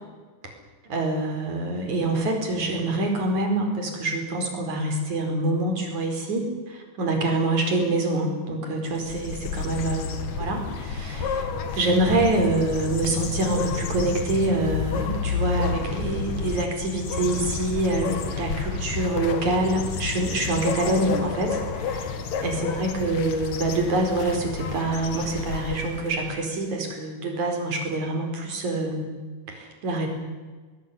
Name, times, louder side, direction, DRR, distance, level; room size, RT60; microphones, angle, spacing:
voice 1, 0.9-22.1 22.4-29.1 29.5-30.1, right 2 dB, 65° right, 3 dB, 6.0 m, -26 dB
sound 1, 8.9-26.2, left 5 dB, 65° left, 3.1 m, -30 dB
21.0 x 19.5 x 10.0 m, 1.4 s
omnidirectional pair, 3.7 m